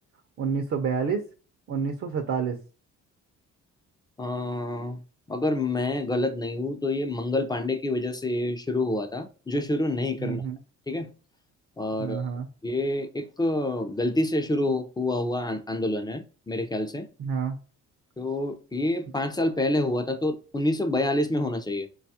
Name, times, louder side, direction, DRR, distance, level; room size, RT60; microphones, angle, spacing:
voice 1, 0.4-1.2 1.7-2.6 10.2-10.6 12.0-12.5 17.2-17.6, right 6 dB, 50° right, 0.6 m, -28 dB
voice 2, 4.2-5.0 5.3-10.4 10.9-11.1 11.8-12.2 12.6-17.1 18.2-21.9, left 1 dB, 15° left, 0.5 m, -27 dB
4.0 x 2.3 x 2.7 m
cardioid pair, 90°, 30 cm